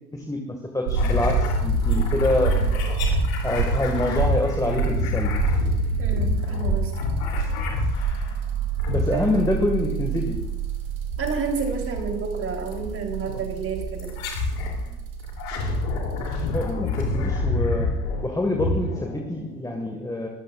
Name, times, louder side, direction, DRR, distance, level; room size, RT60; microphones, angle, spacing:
voice 1, 0.1-2.7 3.4-5.3 8.9-10.4 14.8-15.0 16.5-17.9 18.2-20.3, left 1 dB, 5° left, 2 dB, 1.8 m, -26 dB
sound 1, 0.9-16.7, right 5 dB, 60° right, 2.2 m, -27 dB
sound 2, 1.0-8.4 8.8-9.6 11.3-11.7 12.7-12.8 14.0-14.8 15.2-19.6, left 3 dB, 65° left, 3.2 m, -27 dB
voice 2, 6.0-6.9 9.1-9.2 11.2-14.1, right 4 dB, 30° right, 2 dB, 3.5 m, -30 dB
22.5 x 14.0 x 2.5 m, 0.97 s
figure-of-eight pair, 70°, 46 cm